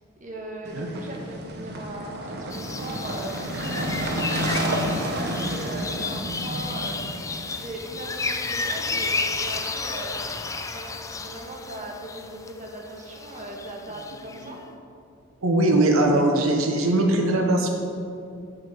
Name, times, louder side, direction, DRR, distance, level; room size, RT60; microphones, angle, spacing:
voice 1, 0.2-3.4 3.9-7.0 7.4-10.2 10.6-14.6, right 1 dB, 40° right, 0 dB, 1.2 m, -38 dB
sound 1, 0.6-7.6, right 1 dB, 55° right, 0.9 m, -30 dB
sound 2, 2.5-14.5, left 3 dB, 15° left, 0.4 m, -32 dB
voice 2, 15.4-17.7, right 1 dB, 85° right, 2 dB, 0.8 m, -20 dB
7.6 x 6.2 x 5.5 m, 2.5 s
head